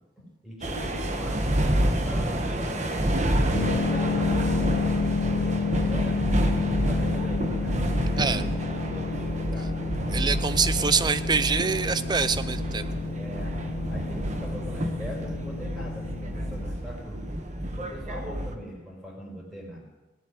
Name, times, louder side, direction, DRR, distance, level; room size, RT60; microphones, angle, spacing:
voice 1, 0.2-1.4 1.7-3.4 3.8-6.5 6.8-7.8 8.3-8.5 8.8-9.8 13.2-13.5 13.9-17.3 17.7-19.8, equal, 5° right, -3 dB, 4.7 m, -41 dB
sound 1, 0.6-18.5, right 1 dB, 40° right, 1.3 m, -29 dB
sound 2, 3.5-16.7, left 4 dB, 70° left, 0.6 m, -30 dB
voice 2, 10.1-12.8, right 5 dB, 25° right, 14 dB, 0.4 m, -25 dB
17.5 x 7.7 x 10.0 m, 1.1 s
head